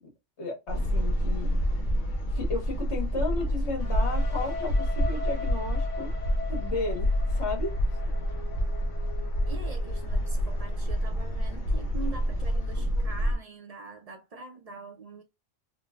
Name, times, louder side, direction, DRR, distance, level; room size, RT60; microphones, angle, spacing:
voice 1, 0.4-1.6 2.3-6.1 6.5-7.7, left 3 dB, 65° left, 1.5 m, -34 dB
sound 1, 0.7-13.3, equal, 50° left, 0.7 m, -28 dB
sound 2, 3.8-11.5, left 4 dB, 80° left, 1.2 m, -42 dB
voice 2, 9.5-15.2, right 3 dB, 60° right, 0.4 m, -43 dB
3.7 x 2.1 x 2.2 m
omnidirectional pair, 1.2 m